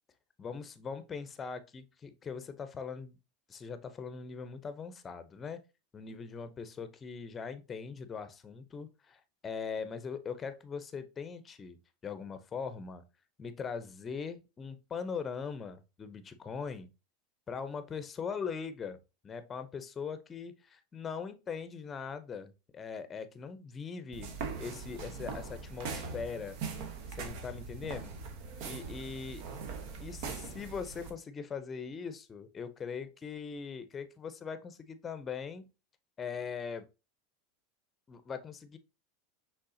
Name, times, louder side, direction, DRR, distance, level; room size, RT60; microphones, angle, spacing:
voice 1, 0.4-3.2 3.5-5.6 5.9-13.0 13.4-16.9 17.5-19.0 19.2-24.3 24.6-26.6 27.1-28.1 28.6-29.4 30.0-35.7 36.2-36.8 38.1-38.8, left 6 dB, 25° left, 0.6 m, -41 dB
sound 1, 24.1-31.1, right 5 dB, 60° right, 1.0 m, -41 dB
5.4 x 3.5 x 2.7 m
hypercardioid pair, 100°, 0 cm